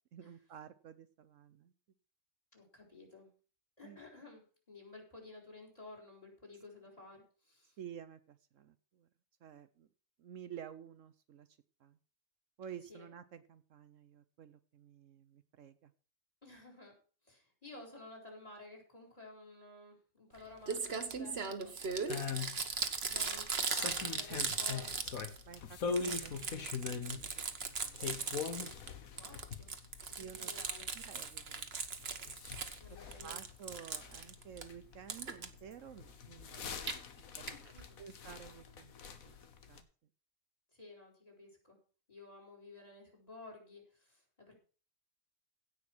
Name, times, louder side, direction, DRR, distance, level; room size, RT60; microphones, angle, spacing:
voice 1, 0.1-1.7 3.8-4.0 7.8-9.1 9.4-9.9 10.2-11.5 11.8-12.0 12.6-15.9 24.3-24.4 25.4-27.3 27.6-28.3 28.8-29.1 30.2-30.5 30.9-31.7 32.0-32.1 33.2-36.7 37.4-37.7 38.0-38.9 39.3-39.4 39.7-39.9, right 8 dB, 70° right, 12 dB, 1.1 m, -52 dB
voice 2, 2.5-3.3 3.8-7.8 12.9-13.1 16.4-17.0 17.2-25.1 29.2-29.7 30.1-30.9 32.8-33.4 37.5-38.0 40.7-41.8 42.1-44.6, left 2 dB, 25° left, 1 dB, 4.4 m, -54 dB
Crumpling crinkling, 20.3-20.4 20.7-25.6 25.8-28.9 29.2-32.8 33.1-34.6 35.1-35.5 36.6-36.9 37.5-37.6 37.8-37.9 38.1-38.2, right 5 dB, 50° right, 1.4 m, -38 dB
sound 1, 21.8-39.8, left 6 dB, 85° left, 1.6 m, -44 dB
16.5 x 5.6 x 6.1 m, 0.39 s
omnidirectional pair, 1.4 m